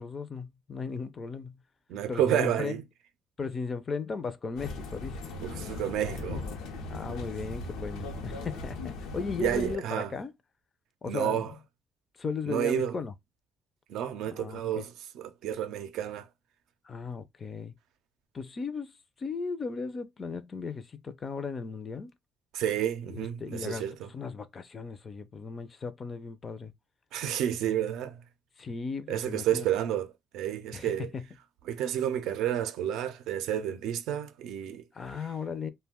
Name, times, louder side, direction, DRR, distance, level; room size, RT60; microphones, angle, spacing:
voice 1, 0.0-1.6 2.1-2.8 3.4-5.3 6.9-10.3 11.0-11.5 12.2-13.1 14.2-14.9 16.8-17.7 18.3-22.1 23.0-26.7 28.6-29.7 30.7-31.3 34.9-35.7, left 5 dB, 35° left, 0.4 m, -36 dB
voice 2, 1.9-2.8 5.4-6.5 9.4-10.1 11.0-11.5 12.5-12.9 13.9-16.3 22.5-24.1 27.1-28.2 29.1-30.1 30.3-31.1 31.7-34.8, right 10 dB, 80° right, 0.4 m, -30 dB
sound 1, 4.6-9.8, left 3 dB, 85° left, 0.7 m, -38 dB
2.5 x 2.2 x 3.4 m
cardioid pair, 110°, 0 cm